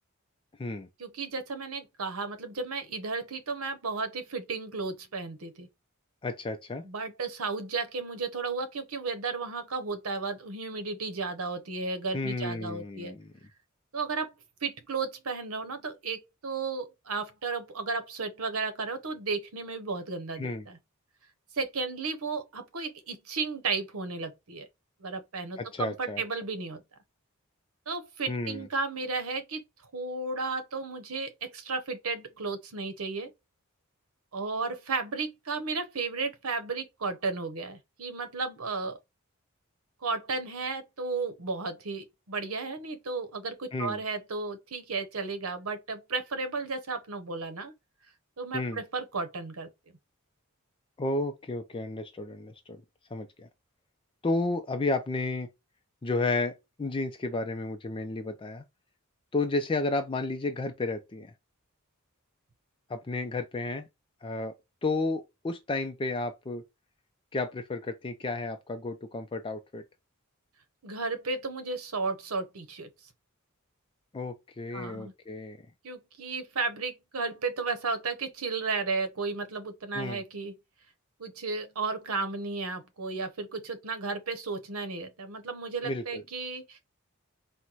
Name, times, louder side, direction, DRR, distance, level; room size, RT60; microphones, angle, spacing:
voice 1, 1.0-5.7 6.8-13.1 13.9-14.3 14.6-20.8 21.5-24.7 25.0-26.8 27.9-29.6 29.9-33.3 34.3-39.0 40.0-47.7 48.4-49.7 70.8-72.9 74.7-75.1 75.8-80.5 81.2-86.8, right 4 dB, 90° right, 0.9 m, -34 dB
voice 2, 6.2-6.8 12.1-13.3 20.4-20.6 25.6-26.2 28.3-28.7 43.7-44.0 48.5-48.8 51.0-52.8 53.1-53.5 54.2-55.5 56.0-58.6 59.3-61.3 62.9-63.9 64.2-64.5 64.8-66.6 67.3-69.8 74.1-75.6 79.9-80.2 85.8-86.2, left 2 dB, 25° left, 0.4 m, -32 dB
4.5 x 2.1 x 3.9 m
head